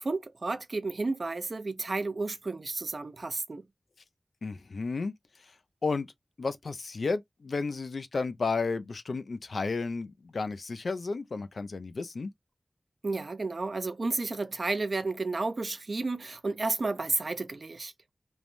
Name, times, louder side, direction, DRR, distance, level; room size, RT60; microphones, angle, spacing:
voice 1, 0.0-3.7 13.0-17.9, right 3 dB, 70° right, 0.4 m, -32 dB
voice 2, 4.4-5.1 5.8-6.1 6.4-12.3, left 4 dB, 85° left, 0.3 m, -32 dB
3.1 x 2.1 x 2.5 m
cardioid pair, 40°, 0 cm